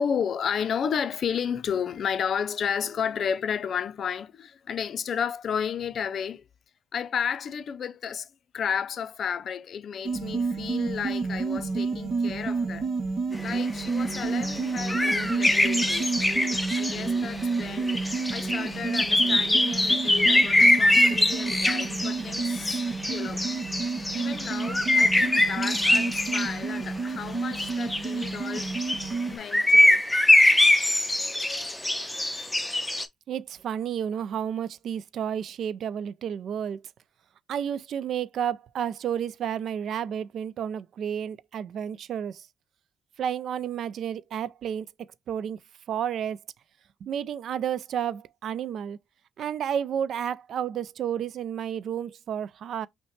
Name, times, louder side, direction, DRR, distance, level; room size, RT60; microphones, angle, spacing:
voice 1, 0.0-6.4 6.9-8.3 8.5-12.9 13.4-16.1 16.8-18.0 18.3-23.4 24.1-28.7 29.3-30.0, left 7 dB, 60° left, 0.4 m, -32 dB
sound 1, 10.0-29.4, right 4 dB, 50° right, 0.8 m, -30 dB
sound 2, 13.3-26.6 27.5-29.2 29.5-33.0, left 1 dB, 10° left, 0.6 m, -23 dB
voice 2, 33.3-36.8 37.5-42.5 43.2-44.9 45.3-45.6 45.9-46.4 47.0-49.0 49.4-52.9, right 9 dB, 65° right, 0.3 m, -31 dB
5.5 x 2.1 x 3.1 m
cardioid pair, 90°, 0 cm